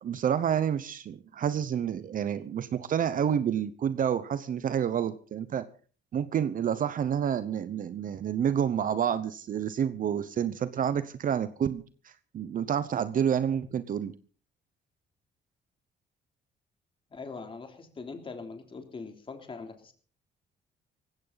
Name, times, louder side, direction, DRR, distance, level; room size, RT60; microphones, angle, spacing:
voice 1, 0.0-5.7 6.1-11.8 12.3-14.1, right 8 dB, 50° right, 14 dB, 0.9 m, -29 dB
voice 2, 17.1-19.9, left 4 dB, 30° left, 5 dB, 3.2 m, -42 dB
19.0 x 16.0 x 4.0 m, 0.39 s
cardioid pair, 120°, 17 cm